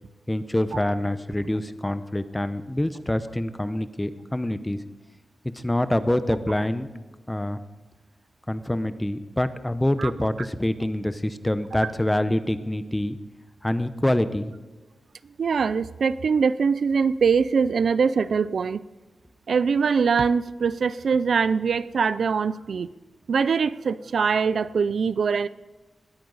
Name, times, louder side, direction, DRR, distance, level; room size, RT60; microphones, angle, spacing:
voice 1, 0.3-4.8 5.5-6.9 7.3-7.6 8.5-13.2 13.6-14.5, left 1 dB, 10° left, 11 dB, 0.7 m, -26 dB
voice 2, 15.4-18.8 19.5-22.9 23.3-25.5, right 5 dB, 70° right, 16 dB, 0.4 m, -23 dB
20.0 x 13.5 x 4.0 m, 1.2 s
wide cardioid pair, 145°, 0 cm